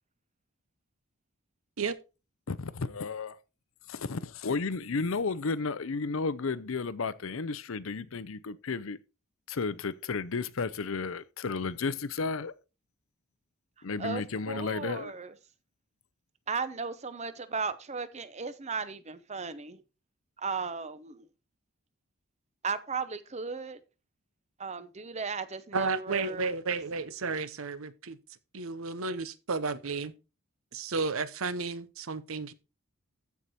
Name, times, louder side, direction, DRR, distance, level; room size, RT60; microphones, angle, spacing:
voice 1, 2.5-3.4 3.9-9.0 9.5-12.5 13.8-15.1, left 4 dB, 65° left, 0.6 m, -33 dB
voice 2, 14.0-15.3 16.5-19.8 20.4-21.2 22.6-23.8 24.6-26.5, right 5 dB, 30° right, 0.7 m, -36 dB
voice 3, 25.7-28.2 28.5-30.1 30.7-32.5, right 4 dB, 70° right, 0.8 m, -32 dB
14.0 x 4.8 x 4.2 m
head